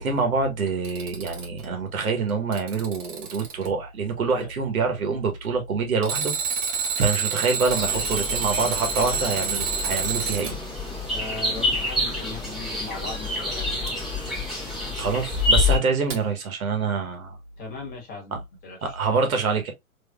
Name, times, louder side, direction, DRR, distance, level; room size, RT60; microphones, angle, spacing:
voice 1, 0.0-6.3 7.0-10.6 15.0-17.4 18.8-19.7, right 4 dB, 80° right, 1.4 m, -26 dB
Alarm, 0.7-1.6 2.3-3.7 6.0-10.5 13.9-14.0 16.1-16.2, right 5 dB, 35° right, 1.0 m, -28 dB
sound 1, 7.7-15.8, left 3 dB, ahead, 0.9 m, -27 dB
voice 2, 11.1-13.7 17.6-18.9, left 3 dB, 20° left, 1.4 m, -38 dB
3.7 x 3.0 x 2.2 m
hypercardioid pair, 135°, 42 cm